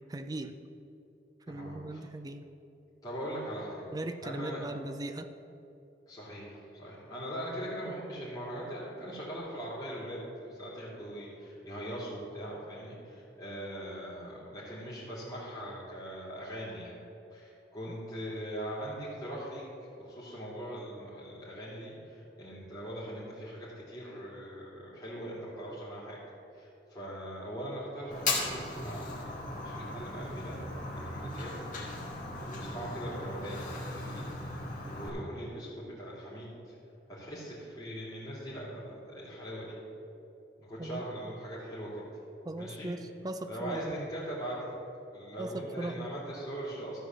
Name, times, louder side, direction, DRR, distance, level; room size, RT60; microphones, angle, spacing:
voice 1, 0.1-0.5 1.5-2.5 3.9-5.3 40.8-41.0 42.4-43.9 45.4-46.1, right 1 dB, 20° right, 9 dB, 0.5 m, -38 dB
voice 2, 1.5-2.0 3.0-3.9 4.2-4.6 6.1-16.9 17.3-19.6 20.0-26.2 26.5-30.6 31.0-31.5 32.4-34.3 34.8-36.7 37.1-39.7 40.6-42.1 42.6-42.9 43.4-44.7 45.1-47.1, equal, 20° left, -10 dB, 2.8 m, -41 dB
Fire, 28.1-35.1, left 2 dB, 45° left, 2.0 m, -37 dB
13.0 x 4.7 x 7.4 m, 2.8 s
head